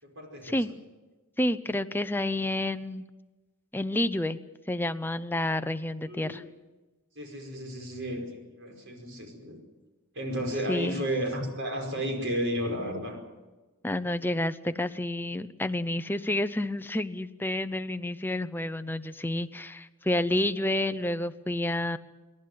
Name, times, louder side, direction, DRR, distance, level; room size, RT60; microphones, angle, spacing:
voice 1, 0.0-0.6 6.1-6.4 7.2-8.3 8.6-9.6 10.1-13.2, equal, 55° right, 3 dB, 5.3 m, -33 dB
voice 2, 1.4-3.0 3.7-4.4 4.7-6.4 10.7-11.0 13.8-22.0, left 1 dB, 10° left, 10 dB, 0.6 m, -29 dB
28.5 x 12.0 x 9.4 m, 1.2 s
head